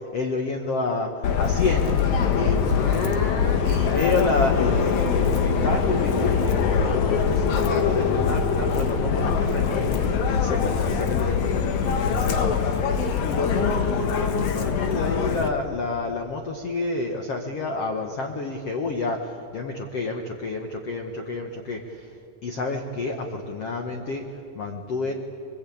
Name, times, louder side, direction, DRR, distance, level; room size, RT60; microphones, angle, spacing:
voice 1, 0.1-12.9 13.2-22.2 22.4-25.1, left 3 dB, 90° left, 4 dB, 1.3 m, -29 dB
Subway metro underground, 1.2-15.5, left 6 dB, 60° left, 2.0 m, -23 dB
25.0 x 21.5 x 8.6 m, 2.7 s
omnidirectional pair, 5.0 m